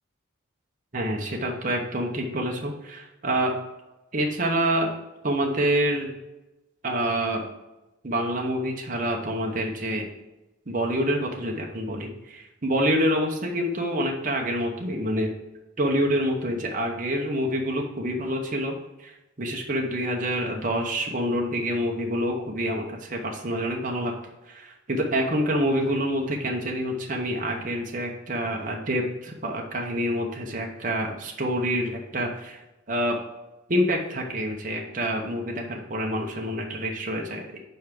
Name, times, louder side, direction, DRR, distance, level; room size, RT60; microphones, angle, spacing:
voice 1, 0.9-3.5 4.1-4.9 5.2-6.1 6.8-7.4 8.0-10.1 10.7-15.3 15.8-18.7 19.0-19.1 19.4-24.1 24.5-32.6 32.9-33.2 33.7-37.6, equal, 40° right, 1 dB, 0.8 m, -27 dB
5.6 x 4.7 x 5.9 m, 1.0 s
head